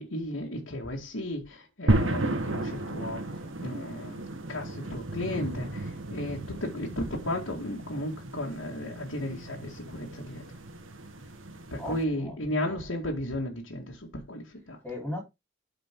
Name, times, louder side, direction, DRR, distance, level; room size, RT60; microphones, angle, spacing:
voice 1, 0.0-4.2 4.5-10.4 11.7-14.8, left 1 dB, 85° left, 2.2 m, -34 dB
sound 1, 1.9-12.0, right 1 dB, 80° right, 1.7 m, -33 dB
voice 2, 11.8-12.9 14.8-15.2, left 1 dB, 5° left, 3.8 m, -38 dB
13.0 x 5.0 x 3.7 m
head